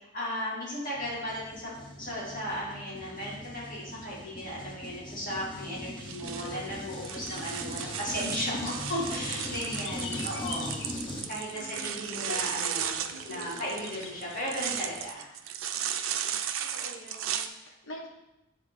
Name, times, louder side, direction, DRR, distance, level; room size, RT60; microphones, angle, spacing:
voice 1, 0.1-1.7 2.0-10.7 11.3-12.9 13.2-15.3, equal, 40° left, -7 dB, 2.1 m, -35 dB
sound 1, 1.0-11.2, left 1 dB, 25° left, 0.8 m, -41 dB
sound 2, 6.0-17.5, right 9 dB, 90° right, 0.4 m, -35 dB
sound 3, 6.2-15.1, left 4 dB, 65° left, 0.6 m, -44 dB
voice 2, 9.6-10.9 11.5-12.4 13.1-13.7 16.6-18.1, left 1 dB, 90° left, -1 dB, 1.3 m, -46 dB
8.4 x 3.8 x 3.2 m, 0.93 s
head